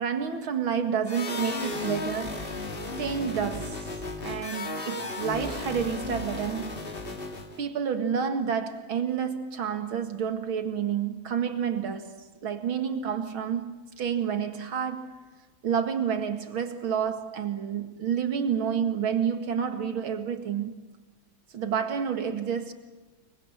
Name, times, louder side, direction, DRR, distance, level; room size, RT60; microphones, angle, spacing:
voice 1, 0.0-2.4 3.0-3.9 4.2-6.8 7.6-15.1 15.6-20.8 21.5-22.7, right 7 dB, 85° right, 2.7 m, -29 dB
sound 1, 1.1-7.6, left 3 dB, 30° left, 2.3 m, -35 dB
29.0 x 24.0 x 7.3 m
omnidirectional pair, 2.2 m